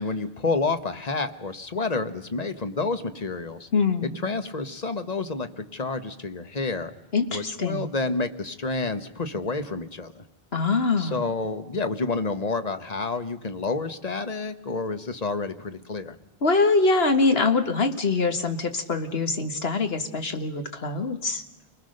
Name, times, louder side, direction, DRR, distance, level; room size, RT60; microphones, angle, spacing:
voice 1, 0.0-3.7 4.0-6.9 7.3-10.2 11.0-16.2, left 3 dB, 40° left, 10 dB, 1.2 m, -29 dB
voice 2, 3.7-4.1 7.1-7.9 10.5-11.2 16.4-21.4, left 3 dB, 70° left, 7 dB, 1.8 m, -24 dB
29.5 x 20.0 x 6.5 m, 0.99 s
omnidirectional pair, 1.1 m